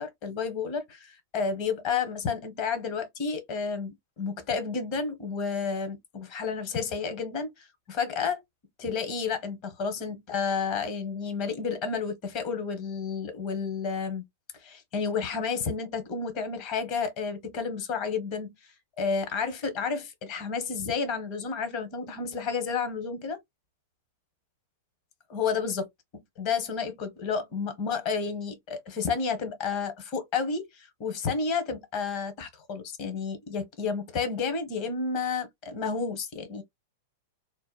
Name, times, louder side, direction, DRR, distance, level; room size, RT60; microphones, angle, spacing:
voice 1, 0.0-8.4 8.8-14.2 14.6-18.5 19.0-23.4 25.3-25.9 26.4-36.6, left 5 dB, 45° left, 0.9 m, -31 dB
2.7 x 2.1 x 2.3 m
hypercardioid pair, 115°, 0 cm